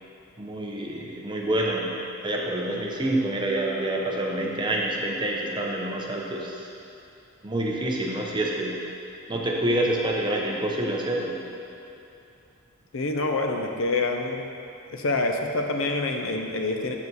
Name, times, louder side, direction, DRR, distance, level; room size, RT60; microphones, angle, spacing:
voice 1, 0.4-6.7 7.4-8.8 9.3-11.4, right 1 dB, 20° right, -2 dB, 0.7 m, -27 dB
voice 2, 12.9-14.5 14.9-17.0, left 2 dB, 60° left, 3 dB, 0.6 m, -26 dB
7.0 x 6.9 x 4.0 m, 2.7 s
head